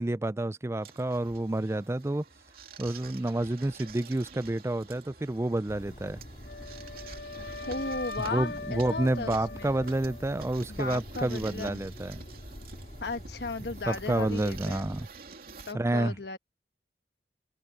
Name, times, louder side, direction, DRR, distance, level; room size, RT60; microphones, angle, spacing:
voice 1, 0.0-2.2 2.8-6.2 8.3-12.2 13.9-15.1 15.7-16.1, right 1 dB, 15° right, 0.4 m, -29 dB
sound 1, 0.8-15.7, right 4 dB, 55° right, 3.1 m, -48 dB
sound 2, 5.7-15.1, equal, 40° left, 2.6 m, -45 dB
Wind instrument woodwind instrument, 6.5-10.6, left 3 dB, 85° left, 1.1 m, -41 dB
voice 2, 7.7-9.7 10.7-11.8 13.0-14.9 15.7-16.4, left 3 dB, 65° left, 1.4 m, -36 dB
head